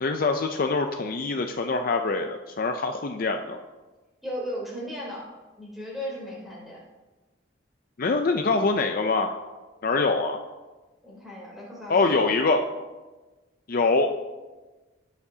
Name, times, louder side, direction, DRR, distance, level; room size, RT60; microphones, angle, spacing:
voice 1, 0.0-3.6 8.0-9.3 9.8-10.4 11.9-12.6 13.7-14.1, left 3 dB, 45° left, 5 dB, 0.5 m, -24 dB
voice 2, 4.2-5.3 5.6-6.8 11.0-12.3, equal, ahead, -6 dB, 3.4 m, -36 dB
16.5 x 7.1 x 2.8 m, 1.2 s
head